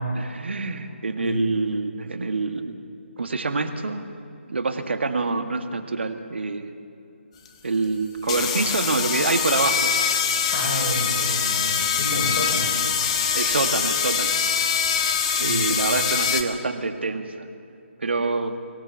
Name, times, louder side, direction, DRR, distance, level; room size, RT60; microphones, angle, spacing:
voice 1, 0.2-2.8 3.2-4.2 4.5-6.7 7.6-9.9 13.3-14.3 15.4-17.5 18.0-18.6, right 3 dB, 60° right, 6 dB, 1.8 m, -26 dB
voice 2, 1.2-1.6 10.5-12.7 15.4-16.0, equal, 45° left, 0 dB, 5.7 m, -29 dB
sound 1, 7.5-7.6 8.2-16.4, left 7 dB, 30° left, 1.5 m, -23 dB
23.0 x 18.0 x 7.2 m, 2.6 s
figure-of-eight pair, 150°, 7 cm